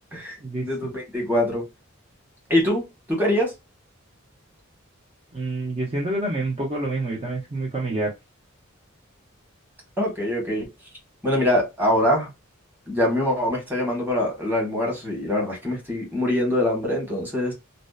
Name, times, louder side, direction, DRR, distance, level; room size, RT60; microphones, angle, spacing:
voice 1, 0.6-1.6 2.5-3.5 10.0-10.7 11.2-12.3 12.9-17.5, left 1 dB, 10° right, 1.1 m, -23 dB
voice 2, 5.3-8.1, right 2 dB, 30° right, 0.6 m, -27 dB
2.7 x 2.0 x 2.3 m
head